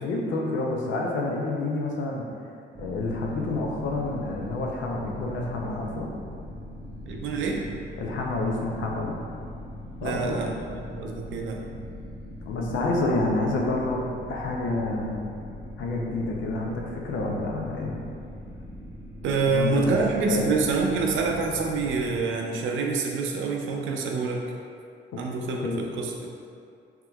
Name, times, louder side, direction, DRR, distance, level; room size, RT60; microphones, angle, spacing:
voice 1, 0.0-2.2 2.8-6.1 8.0-9.2 10.0-10.4 12.5-15.2 15.8-17.9 19.5-19.9 20.2-20.5 25.6-25.8, left 2 dB, 70° left, -1 dB, 0.6 m, -28 dB
sound 1, 2.7-22.2, left 1 dB, 10° right, 0.6 m, -41 dB
voice 2, 7.0-7.6 10.0-11.6 19.2-24.4 25.2-26.3, right 4 dB, 75° right, 1 dB, 0.5 m, -26 dB
3.6 x 2.9 x 2.3 m, 2.4 s
cardioid pair, 90°, 20 cm